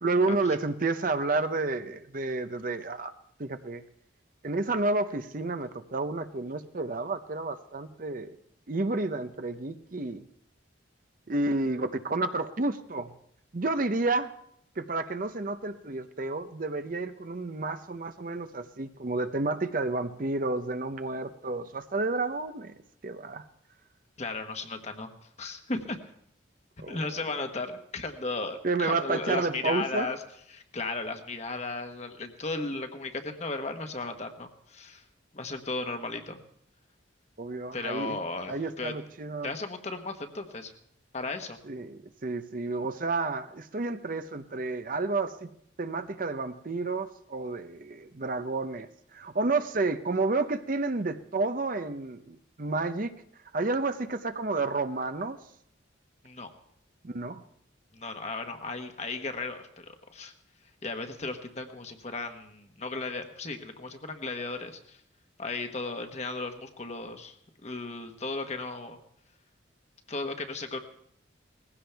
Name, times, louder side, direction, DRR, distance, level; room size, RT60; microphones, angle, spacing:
voice 1, 0.0-3.1 3.4-3.8 4.4-8.3 8.7-10.2 11.3-13.1 13.5-14.3 14.8-22.7 23.0-23.4 26.8-27.0 28.6-30.1 37.4-38.2 38.5-39.5 41.7-45.5 45.8-53.1 53.5-55.4 57.0-57.4, right 3 dB, 45° right, 10 dB, 0.7 m, -30 dB
voice 2, 24.2-25.1 25.4-26.0 26.9-30.2 30.5-35.0 35.3-36.4 37.7-38.9 39.4-40.7 41.1-41.6 56.2-56.5 57.9-60.3 60.8-65.0 65.4-67.3 67.6-69.0 70.1-70.8, left 3 dB, 35° left, 6 dB, 1.2 m, -35 dB
20.0 x 16.0 x 3.4 m, 0.70 s
head